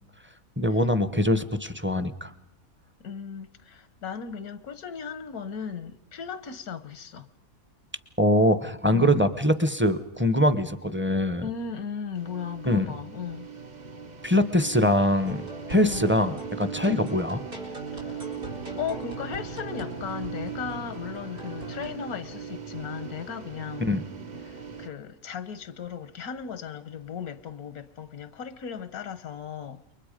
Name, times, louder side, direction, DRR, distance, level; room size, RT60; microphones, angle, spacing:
voice 1, 0.6-2.3 8.2-11.4 12.6-12.9 14.2-15.4 15.7-17.4 23.9-24.0, equal, 10° right, 0.8 m, -23 dB
voice 2, 3.0-7.3 8.9-9.2 11.4-13.5 15.8-16.1 16.9-17.1 17.9-18.4 18.8-23.9 24.4-29.8, left 7 dB, 80° left, 1.5 m, -36 dB
sound 1, 12.2-24.9, right 6 dB, 35° right, 1.0 m, -39 dB
sound 2, 15.3-22.0, right 1 dB, 85° right, 4.8 m, -40 dB
29.0 x 23.5 x 5.2 m
omnidirectional pair, 1.5 m